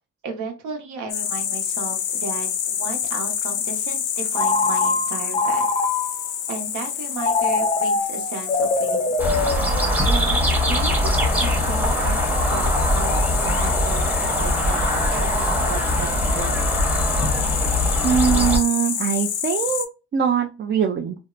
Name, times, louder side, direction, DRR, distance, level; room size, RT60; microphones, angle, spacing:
voice 1, 0.2-5.7 6.5-9.1 10.0-10.4 10.7-12.2 12.5-14.8 15.1-16.7, right 4 dB, 75° right, 3 dB, 1.0 m, -34 dB
sound 1, 1.1-19.9, left 8 dB, 85° left, 0.5 m, -28 dB
Telephone, 4.3-6.3 7.2-10.2, left 3 dB, 25° left, 0.4 m, -23 dB
sound 2, 9.2-18.6, left 1 dB, 5° right, 0.8 m, -21 dB
voice 2, 18.0-19.9 20.1-21.2, right 8 dB, 35° right, 4 dB, 0.4 m, -22 dB
2.7 x 2.1 x 2.4 m, 0.29 s
cardioid pair, 90°, 30 cm